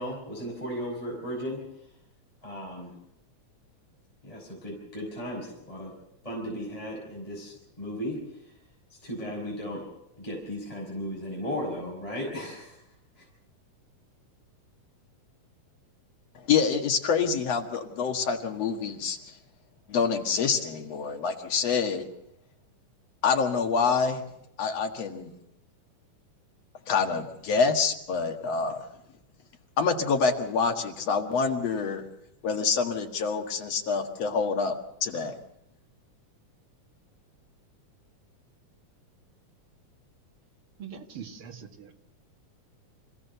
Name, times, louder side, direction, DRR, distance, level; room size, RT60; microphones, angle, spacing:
voice 1, 0.0-1.6 2.4-2.9 4.2-5.9 6.2-8.2 8.9-9.8 10.2-12.8, equal, 10° left, -2 dB, 5.2 m, -35 dB
voice 2, 16.5-19.3 19.9-22.1 23.2-24.2 24.6-25.3 26.9-28.9 29.8-32.0 32.4-35.4, left 5 dB, 55° left, 4 dB, 2.6 m, -26 dB
voice 3, 40.8-41.9, right 7 dB, 50° right, 4 dB, 2.5 m, -42 dB
26.0 x 16.0 x 6.8 m, 0.81 s
omnidirectional pair, 3.7 m